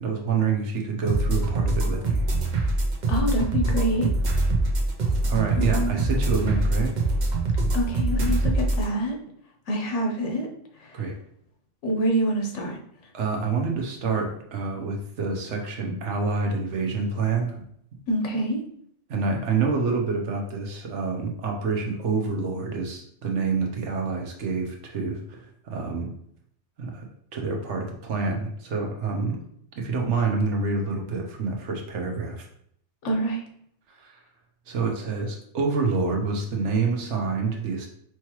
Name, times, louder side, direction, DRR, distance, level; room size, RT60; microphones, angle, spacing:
voice 1, 0.0-2.2 5.3-6.9 10.9-11.1 13.1-17.6 19.1-26.1 26.8-27.1 27.3-29.4 29.8-32.5 33.9-34.2 34.7-37.9, right 4 dB, 75° right, 2 dB, 1.1 m, -27 dB
sound 1, 1.1-8.9, right 2 dB, 45° right, 0.7 m, -24 dB
voice 2, 3.1-4.1 5.5-5.9 7.7-9.2 9.7-10.5 10.8-11.0 11.8-12.8 18.1-18.6 33.0-33.4, right 1 dB, 75° left, 2 dB, 1.2 m, -26 dB
4.6 x 3.1 x 3.0 m, 0.69 s
omnidirectional pair, 1.2 m